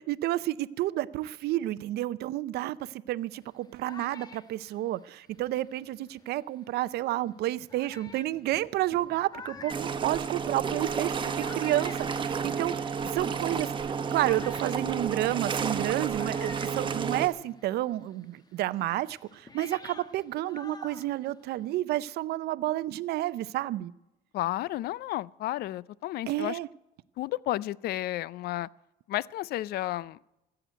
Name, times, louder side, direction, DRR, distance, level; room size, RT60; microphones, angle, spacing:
voice 1, 0.0-2.8 3.1-13.7 14.1-23.9 26.3-26.7, right 15 dB, 70° right, 0.6 m, -30 dB
sound 1, 3.4-6.4 7.1-7.2 7.7-17.7 18.0-21.8, left 3 dB, 25° left, 1.1 m, -49 dB
sound 2, 9.7-17.3, right 6 dB, 30° right, 1.1 m, -31 dB
voice 2, 24.3-26.6 27.2-28.7 29.1-30.2, left 15 dB, 70° left, 0.4 m, -32 dB
15.5 x 7.9 x 9.1 m
cardioid pair, 110°, 17 cm